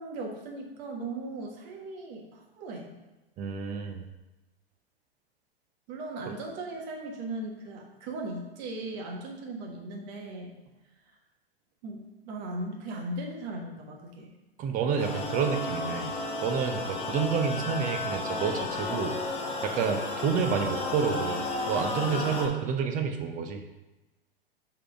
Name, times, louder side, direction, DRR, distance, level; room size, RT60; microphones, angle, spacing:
voice 1, 0.0-2.9 5.9-10.5 11.8-14.3 21.9-22.3, right 2 dB, 45° right, 1 dB, 1.5 m, -38 dB
voice 2, 3.4-4.1 6.3-6.4 14.6-16.2 16.4-19.2 19.6-23.6, right 6 dB, 25° right, 5 dB, 0.7 m, -29 dB
sound 1, 15.0-22.5, left 2 dB, 20° left, 1.0 m, -33 dB
6.6 x 3.8 x 4.8 m, 1.1 s
figure-of-eight pair, 105°, 31 cm